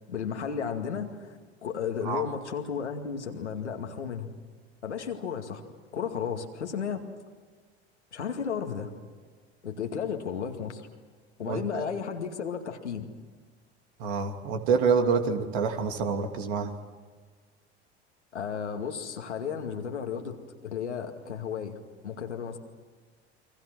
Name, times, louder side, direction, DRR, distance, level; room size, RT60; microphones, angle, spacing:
voice 1, 0.1-4.4 4.8-5.6 5.9-7.1 8.1-8.9 9.6-10.9 11.4-13.1 18.3-21.8 22.0-22.6, left 7 dB, 85° left, 4 dB, 2.3 m, -33 dB
voice 2, 11.5-11.9 14.0-16.7, right 5 dB, 70° right, 5 dB, 2.9 m, -27 dB
29.5 x 24.0 x 6.2 m, 1.5 s
hypercardioid pair, 70°, 34 cm